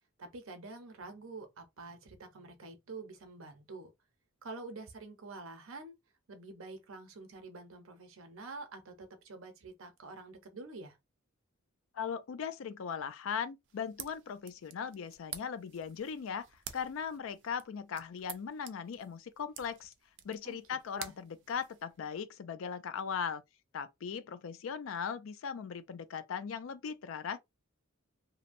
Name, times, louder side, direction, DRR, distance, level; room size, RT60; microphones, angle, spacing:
voice 1, 0.2-3.9 4.4-6.0 6.3-11.0 20.4-20.6 20.9-21.2, right 3 dB, 85° right, 0.7 m, -47 dB
voice 2, 11.9-16.5 16.7-19.9 20.2-23.4 23.7-27.4, left 7 dB, 75° left, 0.4 m, -38 dB
sound 1, 13.6-22.2, right 10 dB, 60° right, 0.4 m, -51 dB
2.7 x 2.1 x 2.5 m
head